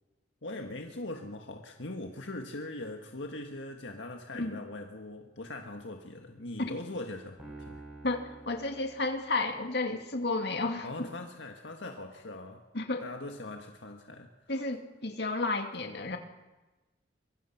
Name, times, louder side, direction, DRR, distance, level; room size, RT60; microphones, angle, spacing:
voice 1, 0.4-7.8 10.8-12.6 13.0-14.3, left 2 dB, 80° left, 3 dB, 1.8 m, -41 dB
Piano, 7.4-9.8, right 2 dB, 5° right, 6.6 m, -49 dB
voice 2, 8.5-11.1 12.7-13.1 14.5-16.2, left 2 dB, 60° left, 4 dB, 2.4 m, -32 dB
25.0 x 23.0 x 5.9 m, 1.1 s
head